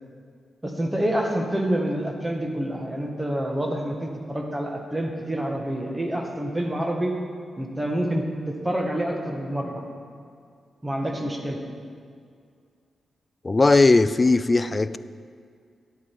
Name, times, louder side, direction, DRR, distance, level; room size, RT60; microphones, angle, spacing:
voice 1, 0.6-7.1 7.6-9.8 10.8-11.6, right 1 dB, 15° right, 2 dB, 1.5 m, -27 dB
voice 2, 13.4-15.0, left 3 dB, 30° left, 14 dB, 0.3 m, -18 dB
11.0 x 8.4 x 4.6 m, 2.2 s
cardioid pair, 80°, 0 cm